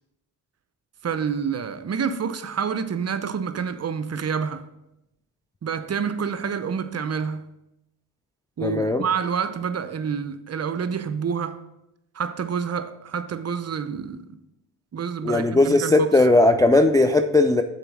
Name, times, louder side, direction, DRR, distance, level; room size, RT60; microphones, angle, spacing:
voice 1, 1.0-4.6 5.6-7.4 8.6-11.6 12.1-14.4 14.9-16.1, right 6 dB, 35° right, 0.6 m, -28 dB
voice 2, 8.6-9.0 15.2-17.6, left 2 dB, 10° left, 0.3 m, -18 dB
6.8 x 4.1 x 6.0 m
supercardioid pair, 50°, 47 cm